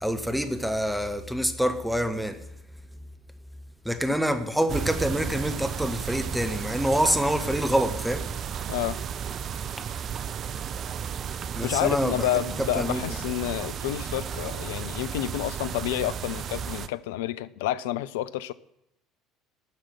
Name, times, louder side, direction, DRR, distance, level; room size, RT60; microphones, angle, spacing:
voice 1, 0.0-2.4 3.8-8.2 11.5-12.1 12.7-13.0, equal, ahead, 1.1 m, -26 dB
sound 1, 4.7-16.9, right 8 dB, 40° right, 0.5 m, -33 dB
voice 2, 8.7-9.0 11.6-18.5, left 13 dB, 65° left, 0.4 m, -29 dB
9.8 x 6.5 x 8.9 m
figure-of-eight pair, 60°, 0 cm